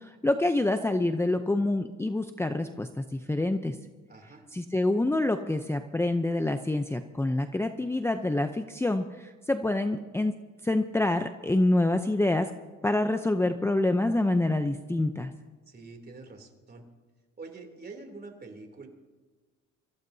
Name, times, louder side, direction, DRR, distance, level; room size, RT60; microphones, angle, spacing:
voice 1, 0.0-3.8 4.5-12.5 12.8-15.3, left 2 dB, 10° left, 7 dB, 0.6 m, -27 dB
voice 2, 4.1-4.5 15.7-16.8 17.4-18.9, right 3 dB, 30° right, 3 dB, 3.1 m, -45 dB
24.0 x 15.0 x 2.8 m, 1.3 s
cardioid pair, 90°, 30 cm